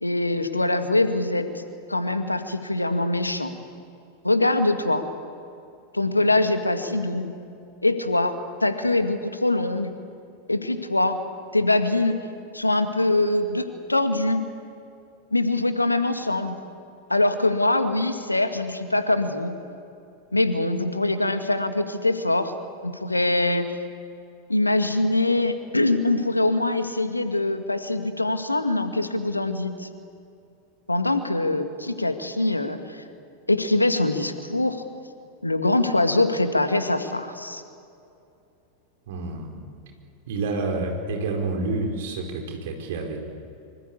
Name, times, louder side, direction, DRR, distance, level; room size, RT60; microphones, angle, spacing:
voice 1, 0.0-1.5 1.9-3.5 4.2-5.0 5.9-7.3 7.8-9.9 10.5-11.2 11.5-12.2 12.5-14.5 15.3-16.6 17.1-19.6 20.3-22.5 22.8-23.8 24.5-29.9 30.9-33.0 33.5-34.8 35.4-37.6, left 2 dB, 85° left, 9 dB, 1.9 m, -23 dB
voice 2, 39.1-39.5 40.3-43.2, right 3 dB, 55° right, 2 dB, 4.8 m, -28 dB
25.5 x 25.0 x 8.5 m, 2.6 s
figure-of-eight pair, 90°, 0 cm